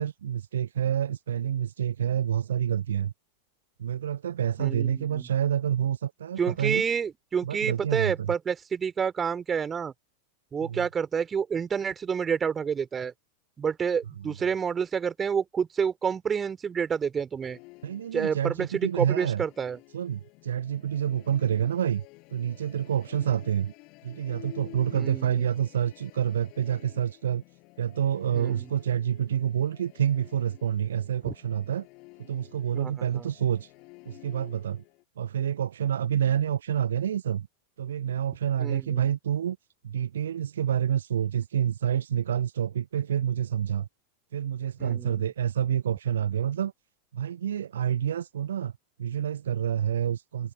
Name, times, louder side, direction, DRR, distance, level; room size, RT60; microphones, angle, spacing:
voice 1, 0.0-3.1 3.8-6.8 7.4-8.3 10.6-10.8 14.2-14.3 17.8-19.4 19.9-22.0 22.3-23.7 24.0-27.4 27.8-31.9 32.2-33.7 34.0-34.8 35.2-37.5 37.8-39.6 39.8-43.9 44.3-46.7 47.1-48.7 49.0-50.5, right 9 dB, 65° right, 1.5 m, -28 dB
voice 2, 4.6-5.3 6.4-9.9 10.5-13.1 13.6-17.6 18.1-19.8 24.9-25.5 28.3-28.7 31.3-31.4 32.7-33.3 38.6-39.1 44.8-45.3, right 7 dB, 20° right, 3.7 m, -29 dB
Musical instrument, 17.4-35.0, left 26 dB, 40° left, 8.0 m, -52 dB
figure-of-eight pair, 90°, 0 cm